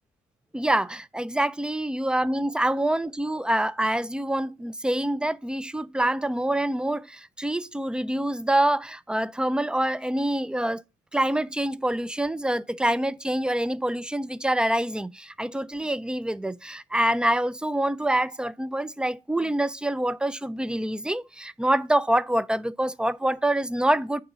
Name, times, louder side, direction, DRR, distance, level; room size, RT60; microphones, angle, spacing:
voice 1, 0.5-10.8 11.1-24.2, right 1 dB, 5° right, 0.4 m, -26 dB
9.0 x 3.9 x 6.1 m
cardioid pair, 90°, 20 cm